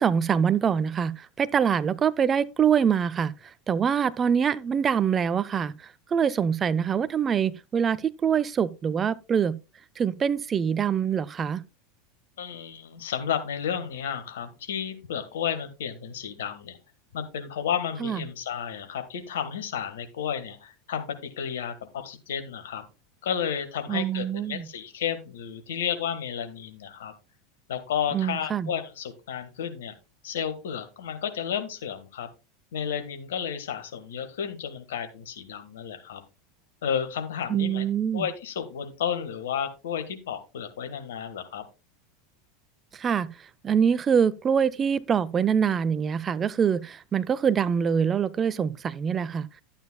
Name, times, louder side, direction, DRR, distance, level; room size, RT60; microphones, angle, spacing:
voice 1, 0.0-3.3 3.7-5.7 6.1-9.6 10.0-11.6 18.0-18.2 23.9-24.7 28.1-28.7 37.5-38.3 43.0-43.3 43.6-49.5, right 7 dB, 25° right, 0.5 m, -24 dB
voice 2, 12.4-16.8 17.1-22.8 23.2-27.1 27.7-29.9 30.2-32.3 32.7-36.2 36.8-37.8 38.1-41.6, left 8 dB, 65° left, 1.5 m, -32 dB
11.5 x 8.9 x 2.3 m
figure-of-eight pair, 80°, 0 cm